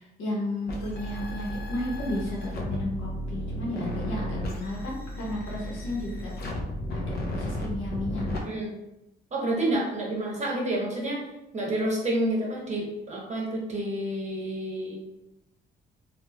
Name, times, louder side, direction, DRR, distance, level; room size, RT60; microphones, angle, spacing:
voice 1, 0.0-6.3 6.9-8.4, left 1 dB, 80° left, -4 dB, 1.1 m, -33 dB
sound 1, 0.7-8.4, equal, 55° left, 0.6 m, -34 dB
voice 2, 9.3-11.2 11.5-15.0, right 1 dB, 35° right, -3 dB, 1.0 m, -29 dB
3.2 x 2.5 x 2.3 m, 0.91 s
cardioid pair, 90°, 20 cm